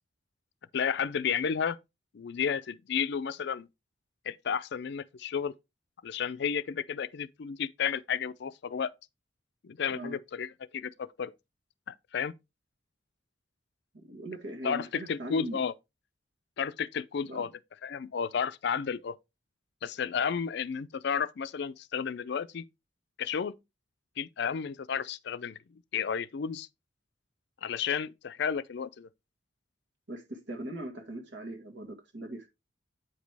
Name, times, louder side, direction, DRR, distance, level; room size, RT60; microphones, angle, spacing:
voice 1, 0.7-1.8 2.1-3.7 4.3-5.5 6.0-8.9 9.6-11.3 11.9-12.3 14.6-15.7 16.6-17.5 17.8-19.1 19.8-22.6 23.2-23.5 24.2-25.6 25.9-26.7 27.6-29.1, left 7 dB, 65° left, 0.4 m, -32 dB
voice 2, 14.0-15.6 17.3-17.5 30.1-32.5, right 1 dB, 75° right, 1.7 m, -40 dB
8.7 x 5.1 x 3.3 m
head